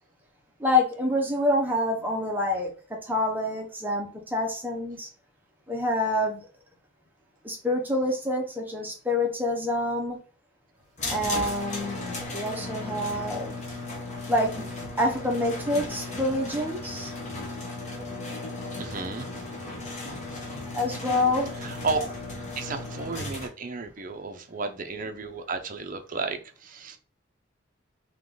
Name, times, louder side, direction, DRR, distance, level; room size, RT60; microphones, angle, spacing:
voice 1, 0.6-5.1 5.7-6.5 7.4-10.2 11.1-13.6 14.3-14.5 15.0-17.1 20.7-21.5, left 1 dB, 10° right, 0.8 m, -27 dB
sound 1, 11.0-23.5, left 2 dB, 35° left, 1.0 m, -36 dB
voice 2, 18.8-19.3 21.6-22.1 22.6-27.0, right 4 dB, 40° right, 0.5 m, -33 dB
3.7 x 3.0 x 3.8 m
head